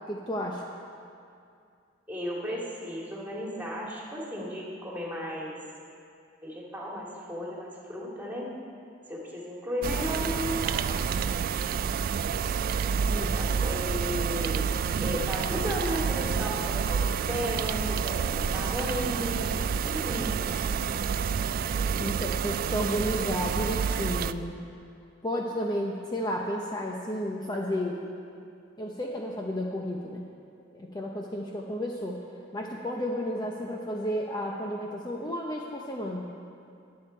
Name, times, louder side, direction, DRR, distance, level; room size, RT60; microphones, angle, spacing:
voice 1, 0.1-0.6 13.1-13.4 22.0-24.6 25.2-28.0 28.8-30.3 30.7-32.2 32.5-36.3, equal, 20° left, -1 dB, 0.8 m, -32 dB
voice 2, 2.1-5.6 6.4-8.5 9.1-11.0 13.3-14.6 15.0-19.5 19.8-20.9, equal, 10° right, -4 dB, 2.2 m, -35 dB
sound 1, 9.8-24.3, right 6 dB, 50° right, 0.3 m, -29 dB
21.0 x 7.7 x 4.4 m, 2.4 s
head